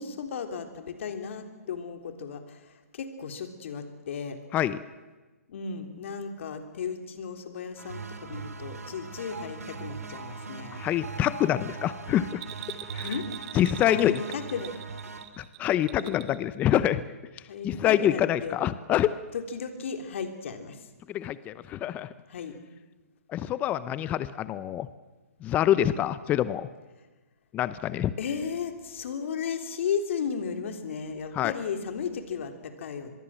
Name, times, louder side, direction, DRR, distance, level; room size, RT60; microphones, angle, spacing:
voice 1, 0.0-4.4 5.5-10.8 13.0-13.3 13.9-14.7 16.0-16.2 17.5-18.6 19.3-20.8 22.3-22.6 28.2-33.1, left 6 dB, 55° left, 7 dB, 3.5 m, -35 dB
voice 2, 4.5-4.8 10.7-12.4 12.9-13.1 13.5-14.2 15.4-17.0 17.6-19.1 21.1-22.1 23.3-24.9 25.4-26.7 27.5-28.1 31.3-31.5, left 11 dB, 20° left, 15 dB, 0.7 m, -26 dB
sound 1, 7.8-15.3, right 4 dB, 85° right, 3.1 m, -40 dB
Bell, 12.3-16.4 16.7-16.8, right 14 dB, 35° right, 1.6 m, -42 dB
25.0 x 21.5 x 7.6 m, 1.2 s
hypercardioid pair, 140°, 8 cm